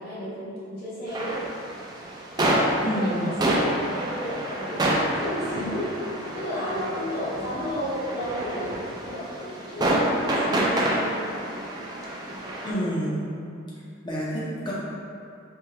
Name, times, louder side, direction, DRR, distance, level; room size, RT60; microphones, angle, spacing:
voice 1, 0.0-1.4 2.2-5.9 6.3-8.7 9.0-11.2, equal, 50° left, -10 dB, 1.3 m, -33 dB
sound 1, 1.1-12.7, right 1 dB, 20° right, 0.4 m, -28 dB
voice 2, 2.8-3.3 12.6-13.2 14.0-14.7, equal, 20° left, -7 dB, 0.7 m, -28 dB
4.4 x 3.0 x 2.8 m, 2.5 s
head